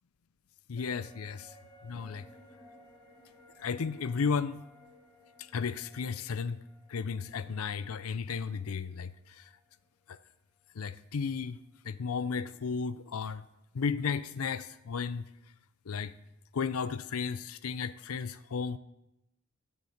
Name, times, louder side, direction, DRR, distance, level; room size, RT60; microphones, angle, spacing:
voice 1, 0.7-1.5 1.8-2.2 3.6-4.6 5.5-6.6 6.9-9.1 10.8-11.6 11.8-13.4 13.7-15.2 15.9-16.1 16.5-18.8, left 5 dB, 85° left, 0.5 m, -33 dB
sound 1, 0.8-10.3 10.6-10.7, equal, 25° left, 3.1 m, -59 dB
14.5 x 6.8 x 6.4 m
head